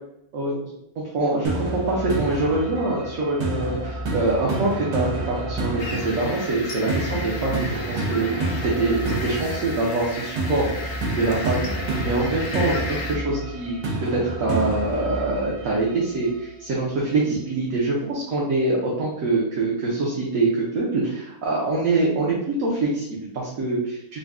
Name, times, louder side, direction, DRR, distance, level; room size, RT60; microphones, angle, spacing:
voice 1, 1.0-24.2, right 2 dB, 60° right, -5 dB, 1.2 m, -24 dB
sound 1, 1.4-16.4, right 2 dB, 80° right, 1.4 m, -29 dB
sound 2, 5.8-13.2, left 3 dB, 60° left, 0.6 m, -35 dB
3.9 x 2.2 x 3.5 m, 0.80 s
omnidirectional pair, 1.7 m